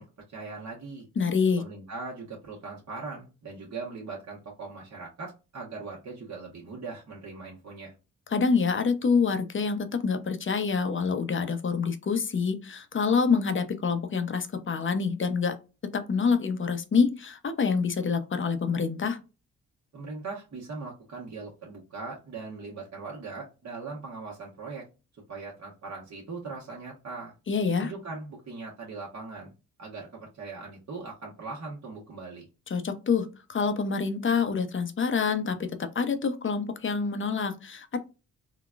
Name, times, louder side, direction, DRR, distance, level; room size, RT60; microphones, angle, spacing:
voice 1, 0.0-1.1 1.6-7.9 19.9-24.8 25.3-27.3 27.8-29.5 29.8-32.5, right 4 dB, 50° right, -4 dB, 1.2 m, -40 dB
voice 2, 1.2-1.6 8.3-15.6 15.9-19.2 27.5-27.9 32.7-35.6 35.9-38.0, left 5 dB, 35° left, 9 dB, 0.7 m, -26 dB
3.8 x 2.3 x 2.4 m, 0.30 s
supercardioid pair, 55°, 35 cm